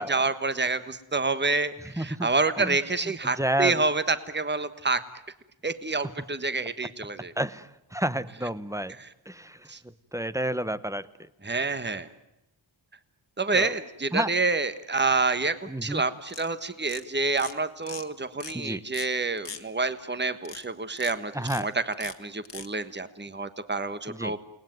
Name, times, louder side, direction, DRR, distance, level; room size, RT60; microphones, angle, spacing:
voice 1, 0.0-5.0 5.6-7.3 9.0-9.1 9.7-9.8 11.4-12.1 13.4-15.5 15.8-21.3 21.6-24.4, right 3 dB, 20° right, 12 dB, 1.4 m, -28 dB
voice 2, 2.0-2.3 2.6-2.8 3.4-3.8 7.4-9.0 9.3-9.7 10.1-11.1 13.5-13.7 14.1-14.3 15.7-16.0 18.5-18.8 21.3-21.7 24.1-24.4, right 1 dB, 5° right, 14 dB, 1.0 m, -30 dB
sound 1, 16.3-16.5 16.9-17.0 17.3-17.5 17.8-18.0 18.4-18.5 18.9-19.1 19.4-19.6 20.4-20.6 21.0-21.1 21.4-21.6 21.9-22.1 22.4-22.7, left 6 dB, 60° left, 1.8 m, -40 dB
29.5 x 19.5 x 9.3 m, 0.92 s
wide cardioid pair, 80°, 47 cm